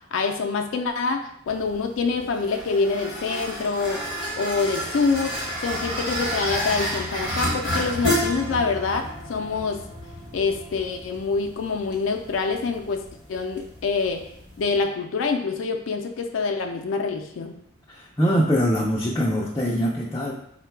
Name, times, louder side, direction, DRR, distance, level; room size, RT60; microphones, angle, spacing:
voice 1, 0.1-4.0 4.4-5.4 5.6-9.8 10.3-13.0 13.3-14.2 14.6-17.6, left 4 dB, 85° left, 5 dB, 0.4 m, -26 dB
sound 1, 1.5-14.8, equal, 25° right, 0.9 m, -31 dB
voice 2, 17.9-20.3, equal, 15° left, -4 dB, 0.4 m, -23 dB
3.7 x 2.1 x 4.4 m, 0.72 s
head